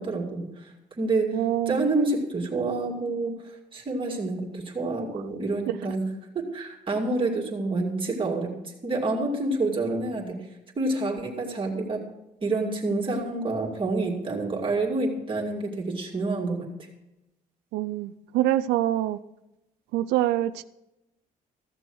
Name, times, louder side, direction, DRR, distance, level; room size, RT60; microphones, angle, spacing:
voice 1, 0.0-3.4 3.7-6.1 6.3-10.4 10.8-12.1 12.4-16.7, right 2 dB, 30° right, 0 dB, 2.2 m, -28 dB
voice 2, 1.3-1.9 17.7-19.2 19.9-20.6, right 13 dB, 85° right, 12 dB, 0.5 m, -25 dB
14.5 x 6.9 x 6.3 m, 0.93 s
cardioid pair, 110°, 17 cm